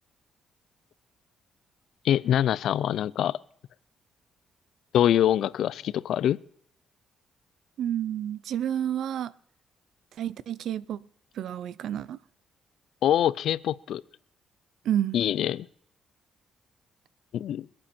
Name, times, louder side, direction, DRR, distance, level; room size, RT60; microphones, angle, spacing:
voice 1, 2.0-3.4 4.9-6.4 13.0-14.0 15.1-15.7 17.3-17.7, left 11 dB, 75° left, 0.5 m, -24 dB
voice 2, 7.8-9.3 10.2-11.0 11.4-12.2 14.8-15.2, right 10 dB, 75° right, 0.6 m, -29 dB
26.5 x 8.9 x 4.4 m
cardioid pair, 90°, 0 cm